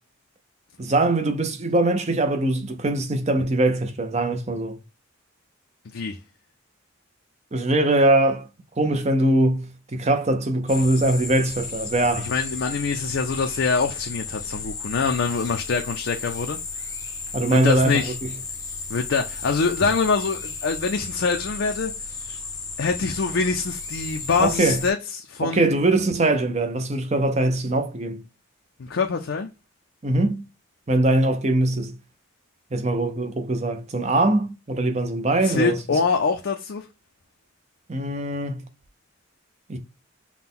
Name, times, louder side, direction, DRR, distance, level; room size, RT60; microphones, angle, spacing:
voice 1, 0.8-4.8 7.5-8.5 8.8-9.7 9.9-12.3 17.3-18.3 24.4-24.8 25.4-28.2 30.0-30.5 30.9-31.9 32.7-35.8 37.9-38.6 39.7-39.8, right 2 dB, 35° right, 0.6 m, -22 dB
voice 2, 5.9-6.2 12.2-16.6 17.5-18.2 18.9-21.9 22.3-22.4 22.8-25.6 28.8-29.5 35.4-36.8, left 4 dB, 60° left, 0.5 m, -24 dB
sound 1, 10.7-24.9, left 4 dB, 20° left, 0.6 m, -34 dB
5.9 x 2.2 x 3.6 m
head